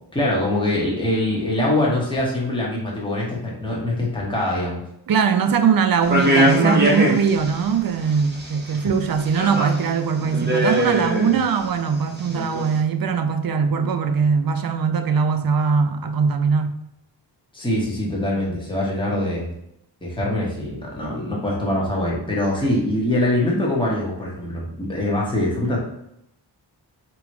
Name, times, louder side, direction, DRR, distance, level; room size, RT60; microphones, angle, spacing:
voice 1, 0.1-4.8 17.5-19.5 20.0-25.8, left 1 dB, 10° left, 1.3 m, -23 dB
voice 2, 5.1-16.8, right 6 dB, 50° right, 0.5 m, -21 dB
sound 1, 6.0-7.6 8.0-8.7 9.2-9.9 10.2-11.6 12.2-12.7, right 1 dB, 20° right, 1.1 m, -21 dB
3.6 x 3.0 x 4.6 m
wide cardioid pair, 115°, 45 cm